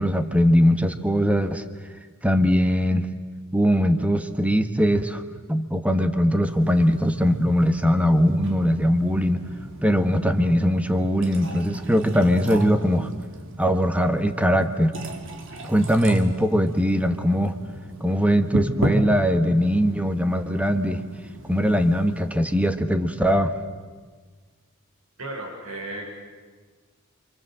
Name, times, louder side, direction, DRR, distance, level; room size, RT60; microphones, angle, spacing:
voice 1, 0.0-1.6 2.2-3.1 3.5-5.2 5.5-9.4 9.8-13.3 13.6-14.9 15.6-17.5 18.0-21.0 21.4-23.5, equal, 5° right, 8 dB, 1.5 m, -21 dB
sound 1, 6.4-22.7, right 1 dB, 60° right, 2.8 m, -35 dB
voice 2, 25.2-26.0, right 2 dB, 90° right, 0 dB, 7.0 m, -34 dB
29.0 x 25.0 x 7.7 m, 1.5 s
head